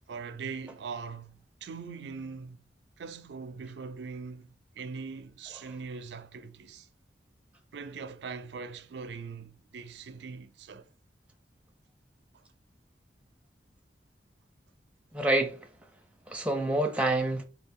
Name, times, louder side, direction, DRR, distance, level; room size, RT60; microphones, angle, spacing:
voice 1, 0.1-2.6 3.0-6.9 7.7-10.9 12.3-12.4, right 5 dB, 70° right, 0.4 m, -41 dB
voice 2, 15.1-15.7 16.3-17.4, right 1 dB, 5° right, 0.5 m, -27 dB
4.4 x 2.3 x 3.5 m
head